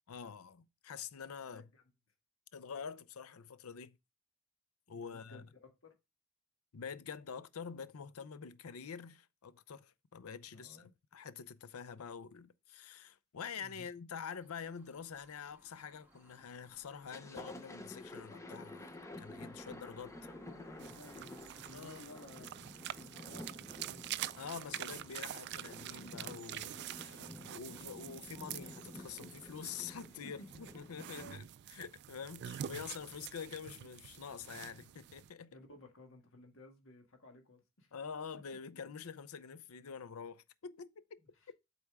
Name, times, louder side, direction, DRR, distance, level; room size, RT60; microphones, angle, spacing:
voice 1, 0.1-1.7 2.5-4.0 4.9-5.5 6.7-20.1 21.7-22.0 24.4-35.6 37.9-41.2, left 6 dB, 85° left, 0.6 m, -47 dB
voice 2, 1.4-1.8 4.9-5.9 10.5-10.9 13.6-13.9 20.4-22.6 23.0-24.1 30.4-30.5 31.1-31.4 35.2-37.9 38.7-38.8 41.2-41.5, left 2 dB, 65° left, 1.6 m, -56 dB
sound 1, 14.3-22.0, equal, 10° right, 1.7 m, -64 dB
Thunder, 16.1-16.5 16.9-31.3, left 1 dB, 15° left, 0.7 m, -51 dB
sound 2, 20.8-35.3, right 11 dB, 50° right, 0.3 m, -46 dB
8.1 x 4.3 x 3.5 m
head